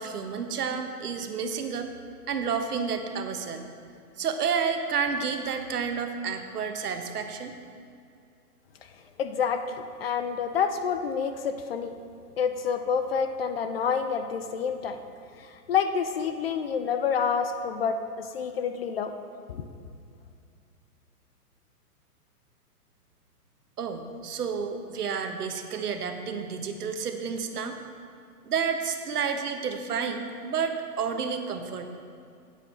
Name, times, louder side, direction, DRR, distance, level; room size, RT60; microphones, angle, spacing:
voice 1, 0.0-1.9 2.3-3.6 4.2-7.5 23.8-27.8 28.4-31.9, right 6 dB, 70° right, 6 dB, 1.2 m, -30 dB
voice 2, 9.2-12.0 12.4-15.0 15.4-19.1 19.5-19.6, left 6 dB, 40° left, 9 dB, 0.5 m, -28 dB
9.3 x 9.1 x 4.3 m, 2.4 s
hypercardioid pair, 140°, 47 cm